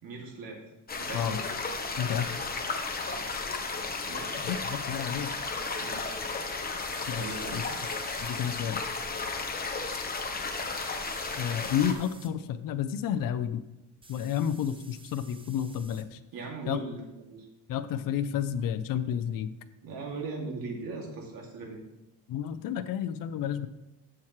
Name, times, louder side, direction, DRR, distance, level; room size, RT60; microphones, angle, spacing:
voice 1, 0.0-0.6 1.0-1.5 3.0-3.3 4.1-4.4 5.8-6.2 7.2-7.7 16.3-17.5 19.8-21.8, right 3 dB, 60° right, 0 dB, 2.5 m, -39 dB
sound 1, 0.9-11.9, left 4 dB, 20° left, 1.0 m, -34 dB
voice 2, 1.1-1.4 2.0-2.4 4.3-5.3 7.1-7.6 8.2-8.8 11.3-13.6 14.1-16.2 16.7-16.8 17.7-19.5 22.3-23.7, left 9 dB, 55° left, 10 dB, 0.6 m, -31 dB
sound 2, 6.8-8.7 10.5-12.3 14.0-16.1, right 3 dB, 15° right, 0.8 m, -51 dB
12.0 x 7.3 x 3.2 m, 0.97 s
cardioid pair, 135°, 40 cm